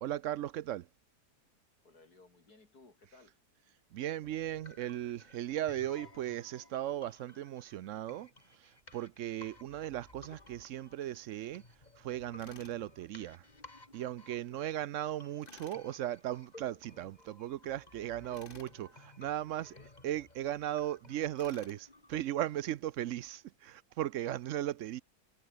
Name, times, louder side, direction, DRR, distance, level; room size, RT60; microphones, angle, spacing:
voice 1, 0.0-0.9 3.9-11.6 12.0-13.5 13.9-19.7 20.0-25.0, right 12 dB, 70° right, 0.8 m, -37 dB
voice 2, 1.8-3.4 14.2-14.7 19.4-19.9, left 3 dB, 70° left, 5.0 m, -61 dB
sound 1, 4.2-22.2, left 2 dB, 25° left, 2.8 m, -58 dB
Tools, 12.4-12.8 15.4-15.8 18.3-18.8 21.4-21.8, left 7 dB, 40° left, 0.9 m, -55 dB
omnidirectional pair, 1.7 m